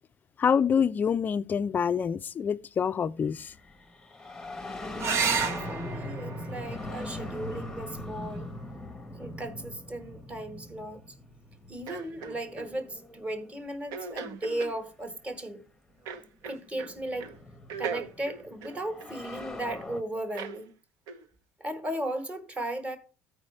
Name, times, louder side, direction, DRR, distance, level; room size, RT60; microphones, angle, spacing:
voice 1, 0.4-3.5, left 7 dB, 30° left, 0.3 m, -26 dB
sound 1, 3.3-13.9 15.1-15.2 16.3-20.0, left 1 dB, 10° left, 0.9 m, -41 dB
voice 2, 4.9-8.5 9.2-11.0 11.7-15.6 16.4-17.3 17.8-20.7 21.6-23.0, right 1 dB, 20° right, 1.2 m, -36 dB
sound 2, 5.0-10.0 11.9-12.5 16.0-16.1 16.4-16.5, right 6 dB, 45° right, 0.9 m, -34 dB
sound 3, 11.9-12.7 13.9-14.8 16.1-16.9 17.2-17.4 17.7-19.5 20.3-20.6 21.1-21.2, right 6 dB, 70° right, 0.9 m, -38 dB
14.0 x 4.8 x 3.1 m
cardioid pair, 130°, 7 cm